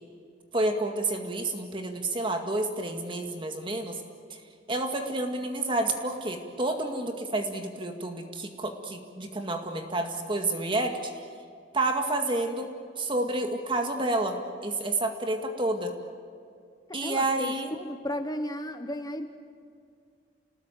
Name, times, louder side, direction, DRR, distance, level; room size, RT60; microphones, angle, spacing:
voice 1, 0.5-4.0 4.3-4.4 4.7-11.1 11.7-12.7 13.0-15.9 16.9-17.7, right 2 dB, 30° right, 4 dB, 2.1 m, -29 dB
voice 2, 16.9-19.3, left 1 dB, 20° left, 7 dB, 1.1 m, -34 dB
29.0 x 20.5 x 9.1 m, 2.4 s
head